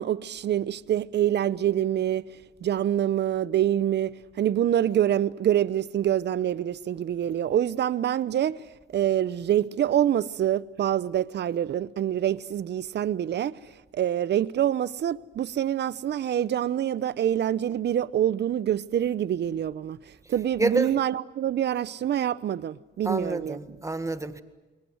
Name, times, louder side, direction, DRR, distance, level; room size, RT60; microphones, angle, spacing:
voice 1, 0.0-2.2 2.6-4.1 4.4-8.6 8.9-13.5 13.9-20.0 20.3-23.6, right 11 dB, 60° right, 0.9 m, -26 dB
voice 2, 20.6-20.9 23.0-24.4, right 2 dB, 15° right, 1.8 m, -28 dB
29.5 x 21.5 x 8.0 m
cardioid pair, 90°, 20 cm